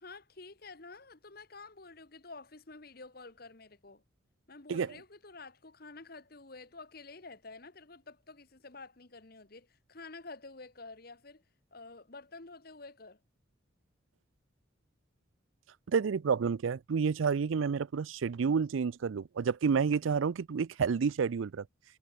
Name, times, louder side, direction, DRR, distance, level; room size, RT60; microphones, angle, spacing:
voice 1, 0.0-4.0 4.5-11.4 11.7-13.2, left 3 dB, 50° left, 1.4 m, -50 dB
voice 2, 15.9-21.6, right 6 dB, 80° right, 0.4 m, -29 dB
head